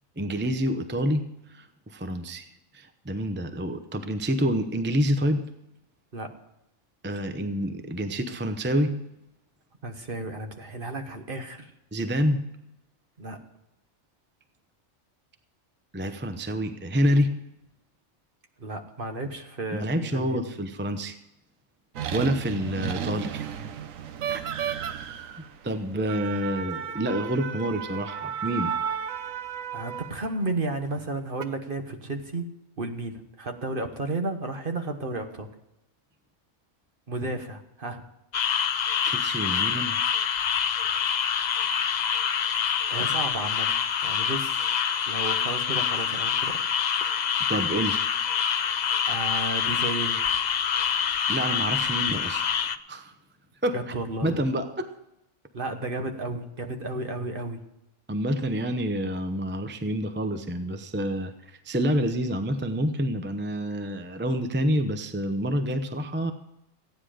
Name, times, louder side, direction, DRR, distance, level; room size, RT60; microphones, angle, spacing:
voice 1, 0.2-1.2 1.5-2.5 2.7-5.4 7.0-8.9 11.9-12.4 15.9-17.3 19.8-21.2 22.1-23.5 24.3-24.4 25.6-28.8 39.0-40.0 41.6-41.9 47.5-48.0 51.3-53.1 53.6-53.9 54.2-54.9 58.1-66.3, equal, 10° right, 8 dB, 0.6 m, -28 dB
voice 2, 9.8-11.7 13.2-13.4 18.6-20.4 29.7-32.5 32.8-35.5 37.1-38.0 42.9-43.8 44.0-44.7 45.1-46.6 49.1-50.2 53.7-54.3 55.5-57.6, right 2 dB, 45° right, 5 dB, 1.4 m, -33 dB
sound 1, 21.9-30.4 31.1-31.4, right 8 dB, 85° right, 1.2 m, -33 dB
sound 2, 38.3-52.8, left 7 dB, 60° left, 0.4 m, -26 dB
15.0 x 9.7 x 5.0 m, 0.85 s
omnidirectional pair, 1.4 m